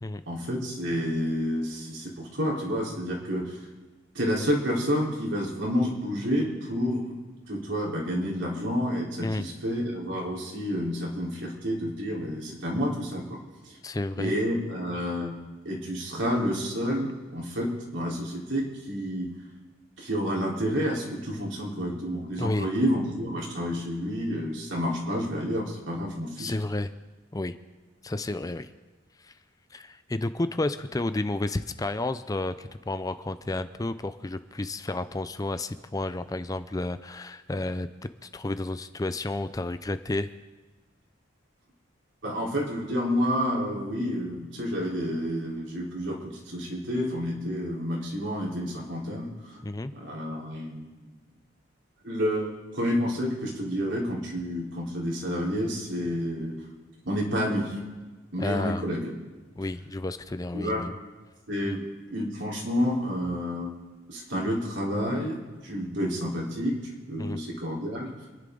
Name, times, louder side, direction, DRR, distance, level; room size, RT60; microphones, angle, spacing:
voice 1, 0.3-3.7 4.1-7.2 7.5-13.4 13.6-13.8 14.2-15.3 15.6-19.3 20.0-26.5 42.2-49.6 49.9-51.1 52.0-56.6 57.1-57.8 58.3-59.1 60.5-60.8 61.5-61.8 62.1-63.8 64.1-68.1, equal, 70° right, -3 dB, 4.0 m, -29 dB
voice 2, 13.8-14.4 22.4-22.7 26.4-26.9 27.3-27.6 28.0-28.7 29.2-29.3 29.7-37.9 38.2-40.3 49.6-49.9 58.4-58.8 59.6-60.9 61.6-61.8 67.2-67.4, left 2 dB, 20° left, 12 dB, 0.5 m, -31 dB
27.5 x 11.0 x 3.9 m, 1.3 s
head